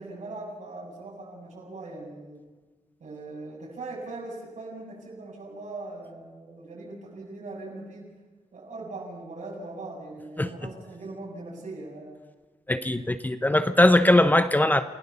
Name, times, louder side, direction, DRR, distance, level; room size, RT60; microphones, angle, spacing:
voice 1, 0.0-2.4 3.0-8.1 8.5-12.2, right 2 dB, 65° right, -2 dB, 7.9 m, -40 dB
voice 2, 12.7-14.8, left 1 dB, 15° left, 10 dB, 0.8 m, -20 dB
28.5 x 17.5 x 7.0 m, 1.3 s
wide cardioid pair, 170°, 13 cm